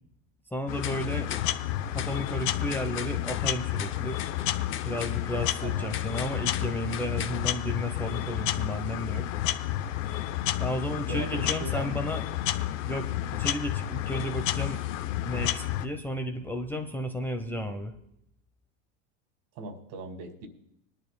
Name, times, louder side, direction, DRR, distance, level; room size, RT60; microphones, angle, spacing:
voice 1, 0.5-1.3 1.9-4.2 4.8-9.3 10.6-12.2 12.8-14.8 15.2-17.9, equal, 5° left, 4 dB, 0.9 m, -33 dB
sound 1, 0.7-15.9, left 13 dB, 70° left, 0.8 m, -31 dB
sound 2, 0.8-8.3 9.0-9.1 10.2-10.3 10.4-10.5 10.9-11.0 11.7-11.8 12.8-12.9 14.1-15.1, left 9 dB, 30° left, 0.7 m, -41 dB
voice 2, 11.1-12.0 19.6-20.5, right 4 dB, 60° right, 5 dB, 2.5 m, -39 dB
21.5 x 11.0 x 2.3 m, 0.75 s
hypercardioid pair, 100°, 39 cm